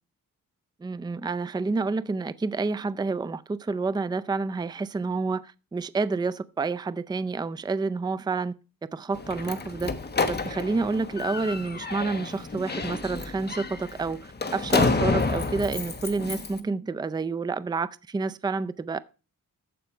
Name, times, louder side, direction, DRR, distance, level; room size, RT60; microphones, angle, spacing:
voice 1, 0.8-8.5 8.9-9.9 10.3-19.0, right 4 dB, 15° right, 0.4 m, -29 dB
Slam, 9.1-16.6, left 3 dB, 30° left, 1.2 m, -29 dB
14.5 x 5.1 x 4.5 m
wide cardioid pair, 115°, 34 cm